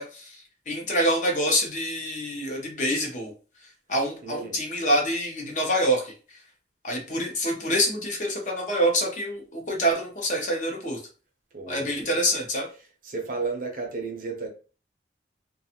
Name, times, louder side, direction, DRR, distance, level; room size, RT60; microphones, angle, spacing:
voice 1, 0.0-3.3 3.9-6.1 6.8-11.0 11.7-12.7, equal, 45° left, 0.7 m, -26 dB
voice 2, 4.2-4.6 11.5-12.1 12.6-14.5, right 4 dB, 50° right, 0.6 m, -34 dB
2.4 x 2.3 x 2.8 m
head